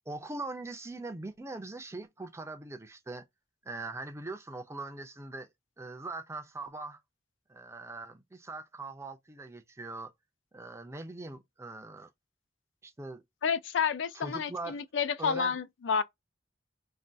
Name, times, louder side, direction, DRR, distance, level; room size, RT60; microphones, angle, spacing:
voice 1, 0.1-3.3 3.6-5.5 5.8-7.0 7.5-10.1 10.5-12.1 12.8-13.2 14.1-14.8 15.2-15.6, right 2 dB, 15° right, 0.5 m, -41 dB
voice 2, 13.4-16.0, left 6 dB, 70° left, 0.4 m, -30 dB
2.6 x 2.3 x 3.3 m
head